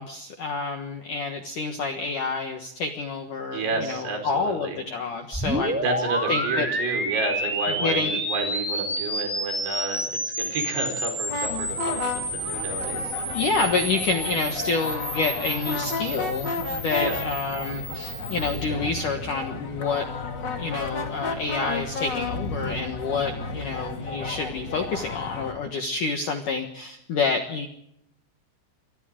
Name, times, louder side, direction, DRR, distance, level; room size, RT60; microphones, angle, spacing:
voice 1, 0.0-5.8 6.3-6.7 7.8-8.2 13.3-20.1 20.6-27.7, left 4 dB, 65° left, 5 dB, 2.0 m, -28 dB
voice 2, 3.5-4.8 5.8-13.1 17.0-17.2, right 3 dB, 55° right, 4 dB, 6.8 m, -31 dB
sound 1, 5.3-18.6, equal, 5° right, 1.3 m, -30 dB
sound 2, 11.3-25.5, left 3 dB, 40° left, 1.6 m, -33 dB
29.0 x 24.0 x 3.8 m, 0.74 s
omnidirectional pair, 5.8 m